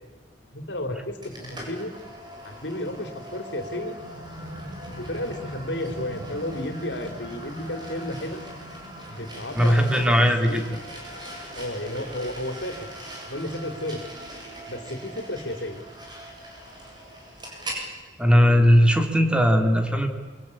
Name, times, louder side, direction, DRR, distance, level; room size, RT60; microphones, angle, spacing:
voice 1, 0.5-1.9 2.4-4.0 4.9-8.4 9.1-10.6 11.6-12.9 13.3-14.0 14.7-15.8, left 1 dB, 70° left, 6 dB, 4.0 m, -32 dB
sound 1, 1.2-17.9, equal, 25° right, 7.9 m, -41 dB
sound 2, 3.7-15.0, equal, 45° right, 3.0 m, -44 dB
voice 2, 9.6-10.6 18.2-20.1, equal, 5° right, 4 dB, 3.2 m, -18 dB
28.0 x 24.0 x 8.8 m, 1.3 s
head